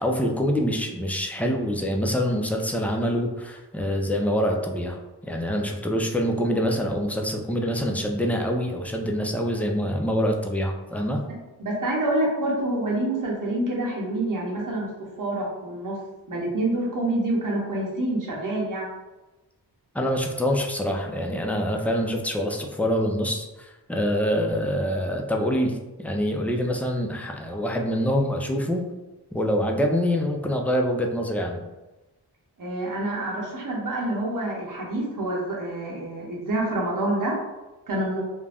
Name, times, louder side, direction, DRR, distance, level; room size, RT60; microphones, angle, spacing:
voice 1, 0.0-5.0 5.3-11.2 19.9-28.8 29.3-31.6, equal, 5° left, 1 dB, 0.4 m, -25 dB
voice 2, 11.3-14.9 15.2-16.0 16.3-18.9 32.6-37.4 37.9-38.2, right 1 dB, 50° right, -4 dB, 0.8 m, -27 dB
2.5 x 2.2 x 3.3 m, 1.1 s
cardioid pair, 55°, 41 cm